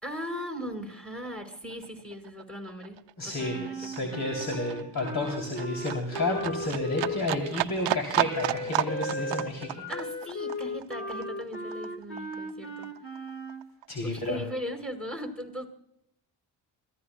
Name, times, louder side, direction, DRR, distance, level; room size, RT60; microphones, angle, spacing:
voice 1, 0.0-4.2 9.9-12.9 14.0-15.7, equal, 5° left, 4 dB, 5.3 m, -38 dB
Livestock farm animals working animals, 1.1-1.3 1.5-12.5 12.8-13.9 14.2-14.3, right 14 dB, 65° right, 0.7 m, -33 dB
voice 2, 3.2-9.8 13.9-14.4, left 2 dB, 50° left, 1 dB, 3.4 m, -31 dB
Wind instrument woodwind instrument, 3.4-7.5 8.3-13.7, left 1 dB, 25° left, 1.9 m, -37 dB
27.0 x 15.0 x 2.3 m, 0.76 s
supercardioid pair, 55°, 47 cm